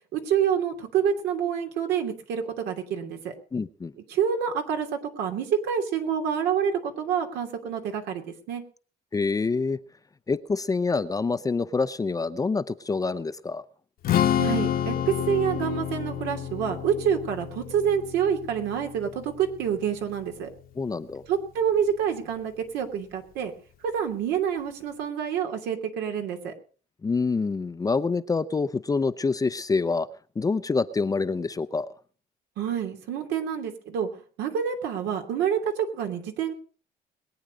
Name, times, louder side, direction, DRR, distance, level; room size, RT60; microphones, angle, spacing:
voice 1, 0.1-3.3 4.1-8.2 8.5-8.6 14.4-20.5 21.3-23.5 23.8-26.5 32.6-34.1 34.4-36.5, right 8 dB, 85° right, 2.8 m, -27 dB
voice 2, 3.5-3.9 9.1-9.8 10.3-13.6 20.8-21.2 27.0-30.1 30.4-31.9, left 4 dB, 20° left, 0.6 m, -26 dB
Strum, 14.0-20.3, left 10 dB, 60° left, 1.3 m, -29 dB
21.5 x 8.9 x 5.1 m
cardioid pair, 110°, 17 cm